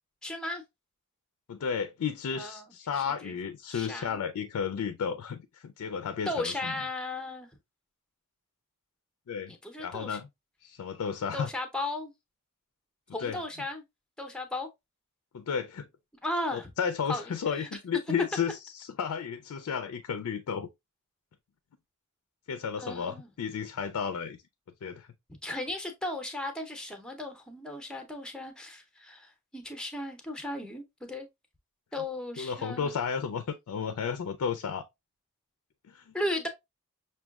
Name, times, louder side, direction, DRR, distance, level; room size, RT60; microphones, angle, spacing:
voice 1, 0.2-0.6 2.3-2.7 3.2-3.3 3.7-4.2 6.3-7.5 9.5-10.2 11.3-12.1 13.1-13.8 14.2-14.7 16.2-16.7 17.1-17.7 22.8-23.3 25.4-31.3 31.9-32.9 36.1-36.5, left 1 dB, 5° left, 0.6 m, -36 dB
voice 2, 1.5-6.7 9.3-9.5 9.8-10.3 10.6-11.5 13.2-13.4 15.3-15.9 16.5-20.7 22.5-24.4 24.8-25.1 32.4-34.8 35.8-36.1, left 6 dB, 80° left, 0.4 m, -33 dB
5.9 x 2.3 x 2.3 m
head